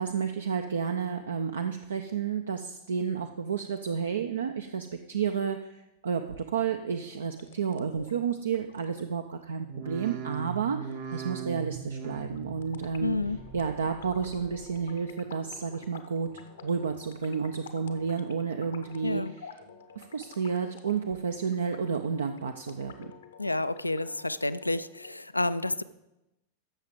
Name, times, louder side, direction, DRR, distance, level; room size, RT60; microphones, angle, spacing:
voice 1, 0.0-13.2 13.5-19.2 20.0-23.1, right 6 dB, 70° right, 7 dB, 0.5 m, -31 dB
sound 1, 7.1-25.1, left 7 dB, 65° left, 0.8 m, -52 dB
sound 2, 9.6-14.9 15.2-15.9 16.3-17.0 17.4-18.1 18.5-19.2 19.6-20.2 20.8-20.9, right 7 dB, 45° right, 0.8 m, -42 dB
voice 2, 13.0-13.4 19.0-19.3 23.4-25.8, left 2 dB, 85° left, 15 dB, 0.3 m, -30 dB
13.5 x 6.4 x 3.7 m, 0.93 s
figure-of-eight pair, 90°, 0 cm